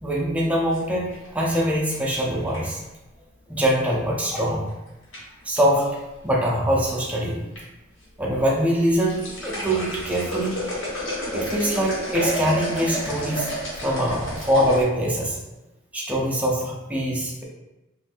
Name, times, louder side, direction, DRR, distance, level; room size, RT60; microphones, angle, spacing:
voice 1, 0.0-2.8 3.5-4.7 5.4-6.0 6.2-7.4 8.2-10.7 11.3-13.5 13.8-15.4 15.9-17.4, equal, 5° right, -3 dB, 0.5 m, -23 dB
sound 1, 0.7-2.8 4.4-4.7 5.1-5.6 6.5-7.1 7.4-7.6 8.0-8.1 8.8-14.8, equal, 75° left, 1.3 m, -31 dB
3.8 x 2.6 x 2.4 m, 1.0 s
head